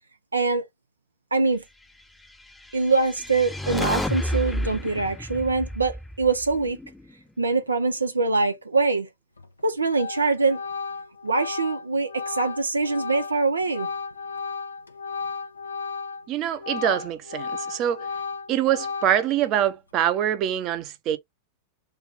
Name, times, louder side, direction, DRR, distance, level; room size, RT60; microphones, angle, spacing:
voice 1, 0.3-0.7 1.3-1.6 2.7-6.8 7.4-9.1 9.6-10.6 11.2-13.9, right 3 dB, 80° right, 0.5 m, -23 dB
sound 1, 2.7-7.0, left 1 dB, 5° left, 0.6 m, -31 dB
Organ, 9.4-9.6 9.9-16.3 16.6-19.5, left 5 dB, 80° left, 0.7 m, -34 dB
voice 2, 16.3-18.0 18.5-21.2, right 10 dB, 35° right, 0.7 m, -24 dB
3.4 x 2.2 x 3.8 m
figure-of-eight pair, 90°, 0 cm